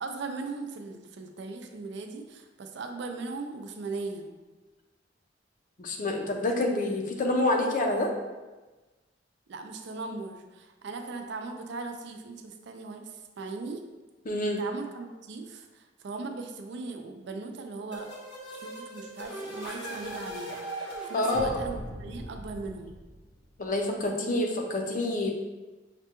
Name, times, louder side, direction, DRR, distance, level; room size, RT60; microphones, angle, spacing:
voice 1, 0.0-4.3 9.5-13.8 14.6-18.1 18.5-23.0, right 3 dB, 65° right, 5 dB, 0.4 m, -38 dB
voice 2, 5.8-8.1 14.3-14.6 21.1-21.6 23.6-25.3, left 1 dB, 45° left, 2 dB, 0.5 m, -27 dB
sound 1, 17.9-23.6, right 1 dB, 75° left, 1.2 m, -39 dB
5.8 x 2.2 x 2.9 m, 1.2 s
head